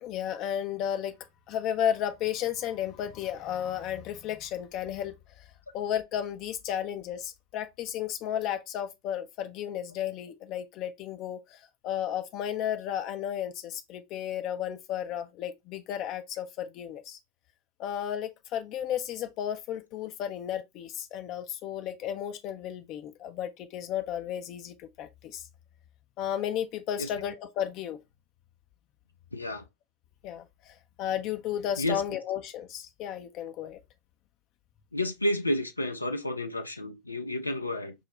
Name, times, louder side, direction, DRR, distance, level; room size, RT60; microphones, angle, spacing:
voice 1, 0.0-1.2 1.5-5.5 5.7-17.2 17.8-25.5 26.2-28.0 30.2-33.8, left 10 dB, 40° left, 0.5 m, -33 dB
voice 2, 29.3-29.6 31.8-32.0 34.9-37.9, left 1 dB, 85° left, 0.6 m, -30 dB
5.2 x 2.1 x 3.1 m
figure-of-eight pair, 90°, 0 cm